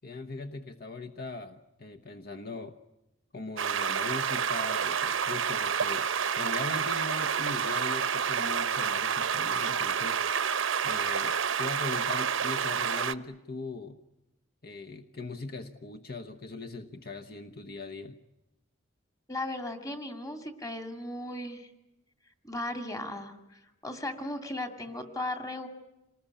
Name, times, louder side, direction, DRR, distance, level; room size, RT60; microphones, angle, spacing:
voice 1, 0.0-2.8 3.3-6.1 6.4-10.2 10.8-14.0 14.6-18.2, left 3 dB, 45° left, 8 dB, 1.0 m, -40 dB
sound 1, 3.6-13.1, right 7 dB, 70° right, 0.9 m, -29 dB
voice 2, 19.3-21.7 22.4-25.7, left 1 dB, 15° left, 6 dB, 2.2 m, -36 dB
28.0 x 20.0 x 9.9 m, 0.94 s
head